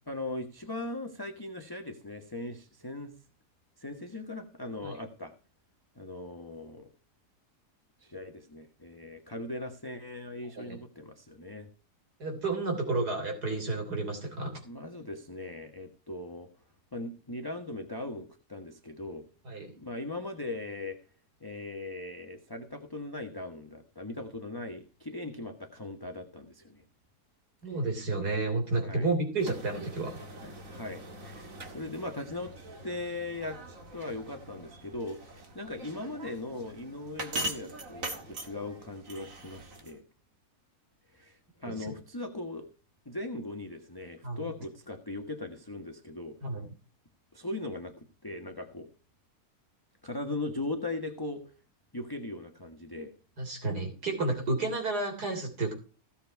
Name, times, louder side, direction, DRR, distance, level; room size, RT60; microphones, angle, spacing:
voice 1, 0.1-3.1 3.8-5.3 6.0-6.9 8.0-11.7 14.6-16.5 16.9-19.2 19.8-21.0 21.4-26.8 27.6-27.8 28.8-29.1 30.4-32.5 32.8-33.6 33.9-40.0 41.1-42.7 43.0-46.3 47.3-48.9 50.0-51.4 51.9-53.1, left 2 dB, 15° left, 4 dB, 1.3 m, -39 dB
voice 2, 12.2-14.6 19.5-19.7 27.6-30.2 41.7-41.9 44.2-44.5 46.4-46.7 53.4-55.7, right 3 dB, 75° right, 4 dB, 3.8 m, -31 dB
sound 1, 29.4-40.0, right 1 dB, 55° right, 2.4 m, -42 dB
16.5 x 7.3 x 4.6 m, 0.35 s
omnidirectional pair, 1.7 m